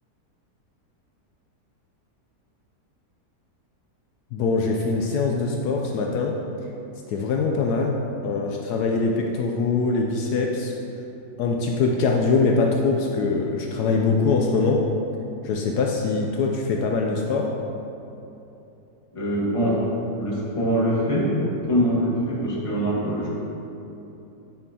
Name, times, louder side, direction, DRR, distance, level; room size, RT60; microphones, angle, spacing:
voice 1, 4.3-6.3 7.1-8.0 8.2-10.7 11.4-14.8 15.4-17.5, left 4 dB, 75° left, 0 dB, 1.1 m, -23 dB
voice 2, 19.1-19.9 20.2-21.4 21.7-23.3, equal, 20° left, -6 dB, 1.2 m, -23 dB
9.2 x 5.4 x 2.8 m, 2.9 s
omnidirectional pair, 1.8 m